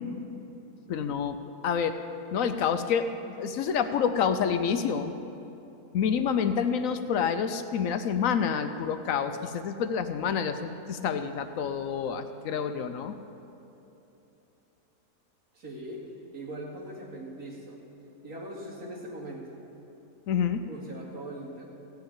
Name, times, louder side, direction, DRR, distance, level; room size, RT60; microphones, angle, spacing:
voice 1, 0.9-1.4 1.6-2.0 2.3-5.1 5.9-13.2 20.3-20.6, left 7 dB, 70° left, 9 dB, 0.9 m, -28 dB
voice 2, 15.5-17.8 18.2-19.5 20.7-21.7, right 1 dB, 65° right, -4 dB, 2.7 m, -40 dB
15.5 x 5.8 x 8.6 m, 3.0 s
omnidirectional pair, 1.7 m